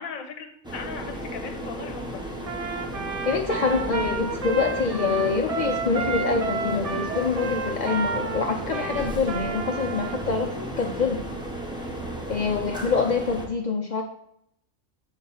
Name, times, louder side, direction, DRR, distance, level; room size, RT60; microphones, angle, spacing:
voice 1, 0.0-2.2, left 5 dB, 80° left, 5 dB, 1.2 m, -38 dB
sound 1, 0.6-13.5, right 1 dB, 5° right, 0.6 m, -34 dB
Trumpet, 2.4-10.2, right 4 dB, 70° right, 0.3 m, -31 dB
voice 2, 3.2-11.2 12.3-14.0, left 4 dB, 65° left, 1 dB, 0.4 m, -25 dB
7.0 x 2.4 x 5.5 m, 0.73 s
omnidirectional pair, 1.4 m